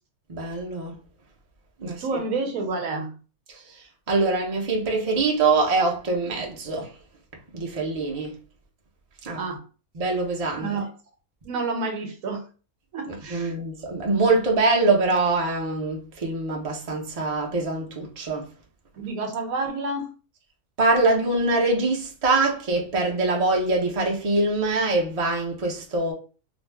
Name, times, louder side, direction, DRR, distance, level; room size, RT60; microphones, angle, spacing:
voice 1, 0.3-1.0 1.8-2.2 3.5-6.9 7.5-8.4 9.2-9.4 9.9-10.7 13.1-18.5 20.8-26.1, right 3 dB, 45° right, 0.5 m, -24 dB
voice 2, 1.8-3.2 9.3-9.6 10.6-10.9 11.4-12.5 12.9-13.6 19.0-20.1, right 3 dB, 75° right, 1.1 m, -29 dB
2.5 x 2.2 x 3.3 m
omnidirectional pair, 1.5 m